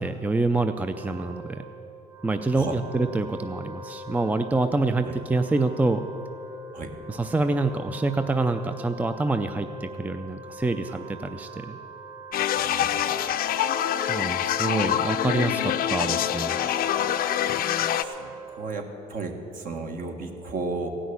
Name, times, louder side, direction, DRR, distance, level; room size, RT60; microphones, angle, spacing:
voice 1, 0.0-1.4 2.2-6.1 7.1-11.8 14.1-16.6, right 3 dB, 10° right, 9 dB, 0.4 m, -26 dB
Wind instrument woodwind instrument, 0.7-18.9, right 2 dB, 25° right, 2.3 m, -43 dB
sound 1, 12.3-18.0, left 11 dB, 60° left, 0.6 m, -25 dB
voice 2, 12.5-13.3 18.0-20.9, right 3 dB, 55° right, 4 dB, 1.6 m, -34 dB
16.0 x 6.3 x 9.4 m, 2.8 s
cardioid pair, 110°, 17 cm